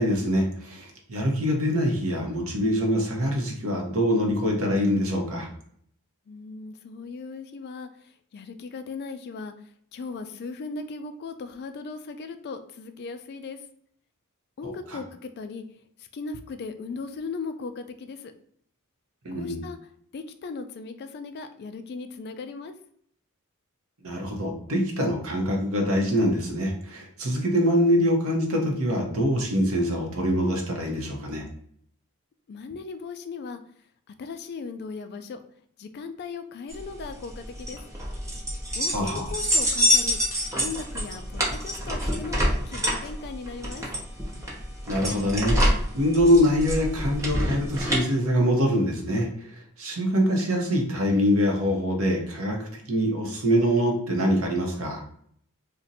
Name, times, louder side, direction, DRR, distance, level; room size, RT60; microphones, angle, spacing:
voice 1, 0.0-5.5 14.6-14.7 19.2-19.6 24.0-31.4 38.9-39.2 44.9-55.0, equal, 65° right, 1 dB, 0.8 m, -24 dB
voice 2, 6.3-9.5 9.9-13.6 14.6-15.6 16.0-18.3 19.3-19.8 20.1-22.7 32.5-33.6 34.1-35.4 35.8-37.8 38.7-40.2 40.6-43.9, left 4 dB, 45° left, 9 dB, 0.3 m, -37 dB
sound 1, 36.7-48.0, equal, 15° right, 0.6 m, -26 dB
2.5 x 2.1 x 4.0 m, 0.64 s
head